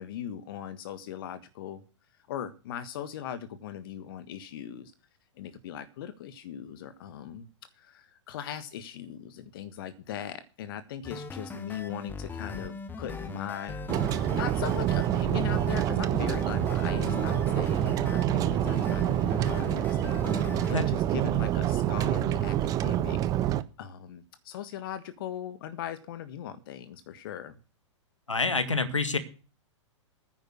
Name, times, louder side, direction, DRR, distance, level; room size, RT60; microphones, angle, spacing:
voice 1, 0.0-1.8 2.3-4.9 5.4-7.5 7.7-20.0 20.7-27.5, left 10 dB, 45° left, 12 dB, 1.4 m, -39 dB
sound 1, 11.0-20.8, left 4 dB, 10° left, 1.3 m, -39 dB
sound 2, 13.9-23.6, right 12 dB, 20° right, 0.7 m, -27 dB
voice 2, 28.3-29.2, left 3 dB, 80° left, 12 dB, 1.8 m, -27 dB
10.0 x 8.9 x 6.3 m, 0.34 s
figure-of-eight pair, 105°, 16 cm